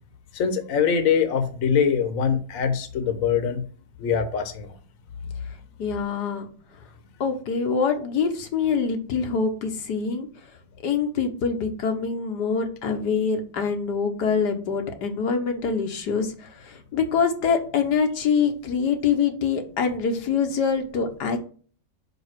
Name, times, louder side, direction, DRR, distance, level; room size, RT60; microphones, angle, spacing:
voice 1, 0.3-3.6 4.0-4.7, left 7 dB, 60° left, 8 dB, 1.3 m, -23 dB
voice 2, 5.8-6.5 7.2-10.3 10.8-21.4, left 6 dB, 85° left, 5 dB, 1.8 m, -25 dB
5.6 x 5.4 x 6.1 m, 0.42 s
omnidirectional pair, 1.7 m